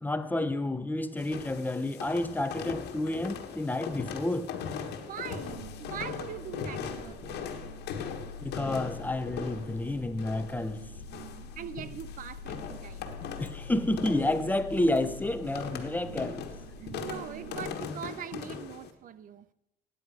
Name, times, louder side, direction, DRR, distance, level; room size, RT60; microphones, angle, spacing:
voice 1, 0.0-4.5 8.4-10.8 13.4-16.4, left 1 dB, 10° left, 0.7 m, -30 dB
sound 1, 1.2-18.9, left 7 dB, 80° left, 1.4 m, -40 dB
voice 2, 5.0-7.5 11.6-13.2 16.8-19.5, right 9 dB, 55° right, 0.6 m, -42 dB
sound 2, 5.5-17.6, left 2 dB, 75° right, 3.1 m, -45 dB
16.5 x 9.3 x 4.9 m
cardioid pair, 110°, 17 cm